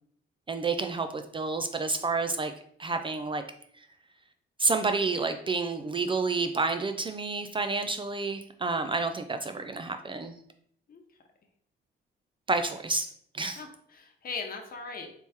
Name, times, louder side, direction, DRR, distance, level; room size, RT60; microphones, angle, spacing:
voice 1, 0.5-2.5 2.8-3.4 4.6-10.3 12.5-13.1 13.3-13.6, right 3 dB, 25° right, 7 dB, 0.4 m, -29 dB
voice 2, 7.8-8.1 10.9-11.0 13.6-15.1, left 4 dB, 45° left, 3 dB, 0.9 m, -40 dB
3.4 x 3.0 x 4.3 m, 0.65 s
cardioid pair, 90°, 20 cm